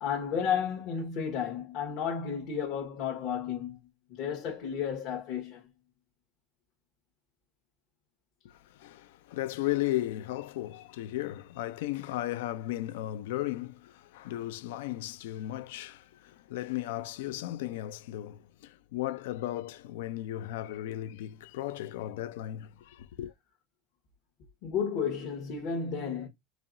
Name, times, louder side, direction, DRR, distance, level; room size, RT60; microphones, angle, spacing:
voice 1, 0.0-3.8 4.1-5.6 24.6-26.3, left 7 dB, 65° left, 1.3 m, -32 dB
voice 2, 8.4-23.3, left 14 dB, 85° left, 0.4 m, -35 dB
4.8 x 2.9 x 2.6 m
supercardioid pair, 110°, 0 cm